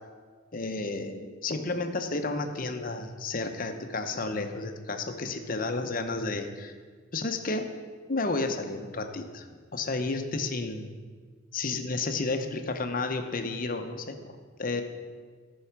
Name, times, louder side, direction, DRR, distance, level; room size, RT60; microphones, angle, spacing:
voice 1, 0.5-6.7 7.1-7.7 8.1-10.9 11.5-14.8, left 3 dB, 45° left, 6 dB, 0.8 m, -32 dB
13.5 x 5.5 x 5.9 m, 1.5 s
head